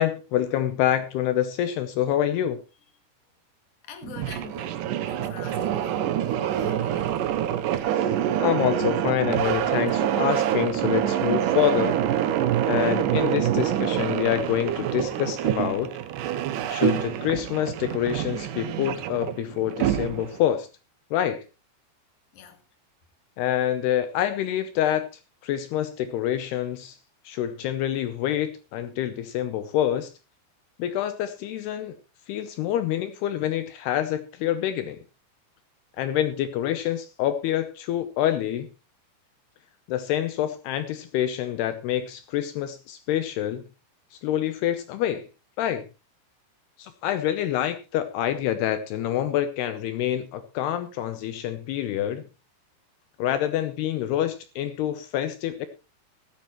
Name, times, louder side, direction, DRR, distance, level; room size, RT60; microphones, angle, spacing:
voice 1, 0.0-2.6 8.0-8.1 8.4-12.1 12.7-15.9 16.7-20.7 21.1-21.4 23.4-25.1 25.4-27.0 27.3-30.1 30.8-32.0 32.3-35.0 36.0-38.7 39.9-43.6 44.1-45.3 45.6-45.8 46.8-52.3 53.2-55.7, left 11 dB, 75° left, 2.7 m, -26 dB
voice 2, 3.9-7.3 22.3-22.6, left 7 dB, 55° left, 2.9 m, -44 dB
sound 1, 4.0-20.4, right 10 dB, 80° right, 1.9 m, -26 dB
16.0 x 14.0 x 3.1 m
omnidirectional pair, 5.0 m